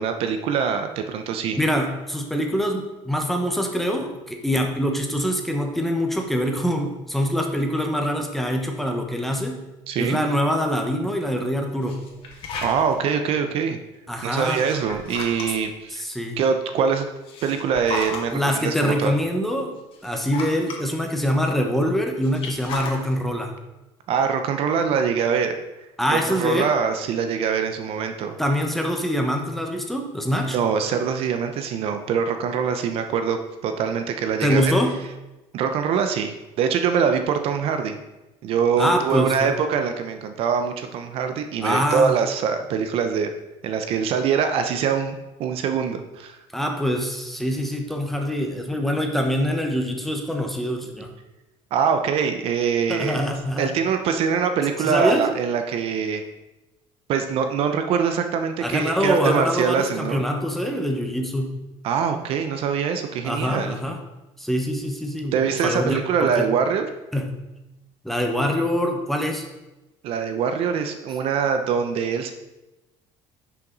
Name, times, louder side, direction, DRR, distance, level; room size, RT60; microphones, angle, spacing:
voice 1, 0.0-1.6 9.9-10.2 12.6-13.8 14.2-16.0 16.4-17.0 17.4-19.1 24.1-25.6 26.1-28.4 30.5-34.7 35.5-38.0 38.4-43.3 43.6-46.4 51.7-53.2 53.6-56.2 57.1-60.2 61.8-63.8 65.3-66.9 70.0-72.3, right 6 dB, 55° right, 7 dB, 0.8 m, -23 dB
voice 2, 1.5-9.6 10.0-12.0 14.1-14.7 15.9-16.4 18.3-19.7 20.0-23.5 26.0-26.7 28.4-30.6 34.4-35.0 38.8-39.5 41.6-42.2 46.5-51.1 52.9-53.7 54.8-55.3 58.6-61.6 63.2-64.0 64.4-66.5 67.1-67.4 68.0-69.4, equal, ahead, 2 dB, 1.0 m, -24 dB
sound 1, 11.8-13.1 14.2-15.8 17.0-18.4 19.1-19.2 19.8-20.8 22.2-23.1, left 4 dB, 50° left, 1.8 m, -34 dB
10.5 x 5.9 x 4.0 m, 1.0 s
cardioid pair, 155°, 12 cm